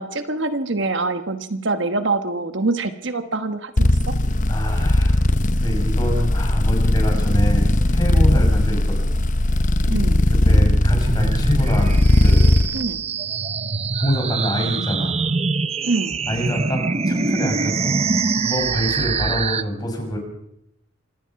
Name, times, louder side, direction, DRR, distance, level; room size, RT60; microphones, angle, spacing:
voice 1, 0.0-4.1 9.8-10.2 12.7-13.0 15.8-16.2, right 3 dB, 65° right, 10 dB, 1.3 m, -25 dB
sound 1, 3.8-12.7, left 1 dB, 40° left, 0.9 m, -18 dB
voice 2, 4.5-5.2 5.5-9.1 10.3-12.6 14.0-15.2 16.3-20.2, equal, 20° left, 2 dB, 6.0 m, -26 dB
sound 2, 10.8-19.6, right 4 dB, 30° right, 0.7 m, -24 dB
26.0 x 18.5 x 5.9 m, 0.79 s
head